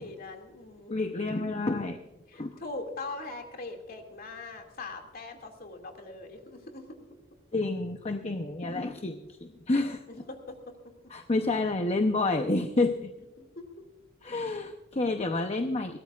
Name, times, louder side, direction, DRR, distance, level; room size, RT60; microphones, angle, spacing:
voice 1, 0.0-1.0 2.3-7.0 10.1-10.6 13.4-13.6, left 3 dB, 50° left, 3 dB, 2.4 m, -41 dB
voice 2, 0.9-2.0 2.4-2.6 7.5-10.0 11.1-13.1 14.2-16.0, left 2 dB, 35° left, 6 dB, 0.8 m, -29 dB
21.5 x 17.5 x 2.4 m, 0.99 s
head